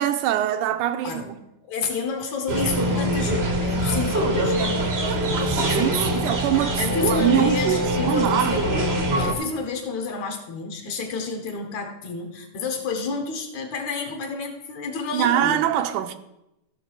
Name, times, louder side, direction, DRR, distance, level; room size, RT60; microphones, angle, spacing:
voice 1, 0.0-1.4 4.6-8.6 15.1-16.2, right 11 dB, 85° right, 2.1 m, -24 dB
voice 2, 1.7-4.7 6.8-8.7 9.1-15.6, left 4 dB, 70° left, 2.4 m, -30 dB
sound 1, 2.5-9.3, equal, 70° right, 0.5 m, -23 dB
15.5 x 6.0 x 4.7 m
omnidirectional pair, 3.6 m